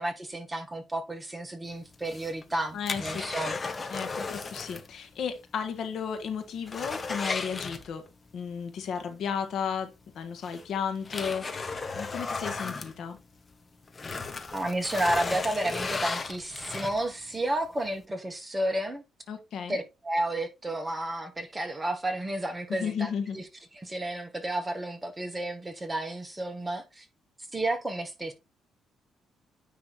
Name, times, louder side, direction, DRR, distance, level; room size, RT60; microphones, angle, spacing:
voice 1, 0.0-3.6 14.5-19.0 19.7-23.4 23.7-27.1 27.5-28.3, right 1 dB, 15° right, 1.8 m, -32 dB
sound 1, 1.9-4.9 5.2-5.3 5.8-5.9 6.2-8.3 9.7-9.8 10.4-13.5 13.9-17.2 17.7-17.8, left 4 dB, 30° left, 1.1 m, -35 dB
voice 2, 2.7-3.3 3.9-8.1 8.3-13.2 19.3-19.8 22.7-23.4, left 7 dB, 70° left, 1.5 m, -34 dB
9.6 x 3.4 x 4.3 m
cardioid pair, 90°, 0 cm